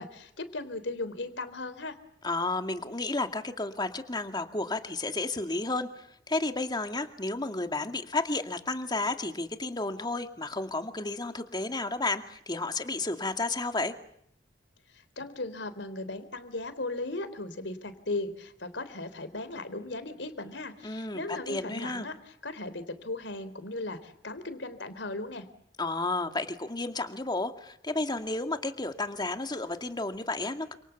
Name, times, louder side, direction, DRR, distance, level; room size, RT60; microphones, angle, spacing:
voice 1, 0.0-2.0 14.9-25.5, left 2 dB, 75° left, 11 dB, 3.7 m, -37 dB
voice 2, 2.2-13.9 20.8-22.1 25.8-30.7, left 2 dB, 25° left, 7 dB, 2.3 m, -32 dB
29.5 x 27.0 x 7.2 m, 0.71 s
head